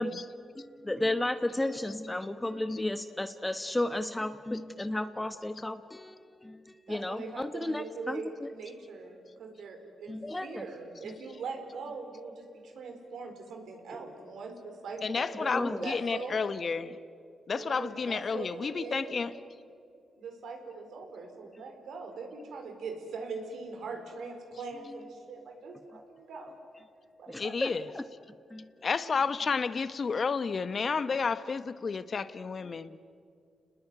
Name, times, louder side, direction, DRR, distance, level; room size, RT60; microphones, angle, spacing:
voice 1, 0.0-8.5 10.1-10.6 11.0-11.2 13.9-14.3 15.4-15.9 21.6-21.7 27.3-28.0 28.5-28.9, left 1 dB, 15° left, 1.1 m, -34 dB
voice 2, 6.9-16.4 17.5-19.2 20.2-26.5 27.2-27.6, right 4 dB, 80° right, 4.4 m, -42 dB
voice 3, 15.0-17.0 17.5-19.3 27.4-27.8 28.8-33.0, left 5 dB, 50° left, 1.1 m, -31 dB
29.5 x 20.0 x 9.3 m
cardioid pair, 70°, 0 cm